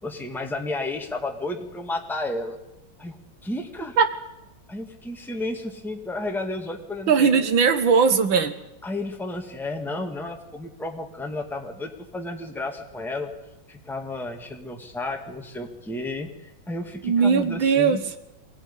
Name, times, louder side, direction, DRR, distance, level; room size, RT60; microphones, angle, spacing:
voice 1, 0.0-2.6 3.0-3.2 3.4-4.0 4.7-7.4 8.8-13.3 13.7-18.0, left 2 dB, ahead, 3 dB, 1.9 m, -32 dB
voice 2, 7.1-8.5 17.0-18.0, right 6 dB, 75° right, 9 dB, 2.1 m, -19 dB
22.0 x 17.0 x 9.9 m, 0.92 s
omnidirectional pair, 2.2 m